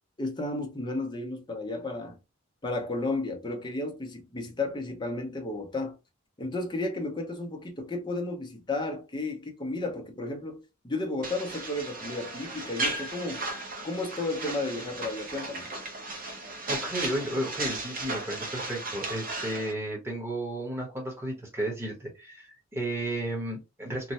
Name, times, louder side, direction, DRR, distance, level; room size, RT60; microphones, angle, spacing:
voice 1, 0.2-2.2 2.6-6.0 6.4-13.4 13.8-15.7, left 2 dB, 20° left, 0.7 m, -33 dB
sound 1, 11.2-19.7, right 2 dB, 40° right, 0.8 m, -35 dB
voice 2, 16.7-24.1, right 1 dB, 10° right, 1.0 m, -33 dB
3.1 x 2.2 x 2.7 m
head